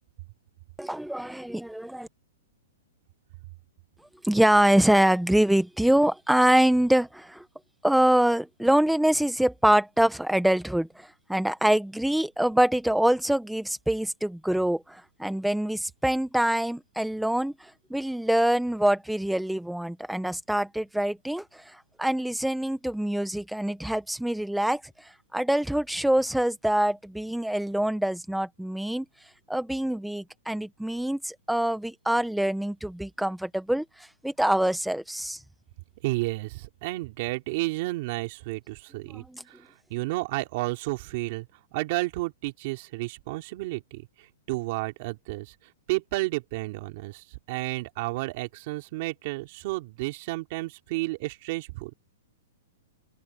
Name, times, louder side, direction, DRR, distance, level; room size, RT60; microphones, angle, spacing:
voice 1, 0.8-2.1 4.2-7.4 7.8-24.8 25.3-29.0 29.5-33.8 34.2-35.4 39.1-39.4, right 1 dB, ahead, 1.1 m, -25 dB
voice 2, 36.0-39.6 39.9-41.5 41.7-45.5 45.9-51.9, right 21 dB, 35° right, 3.4 m, -31 dB
open air
hypercardioid pair, 170°, 0 cm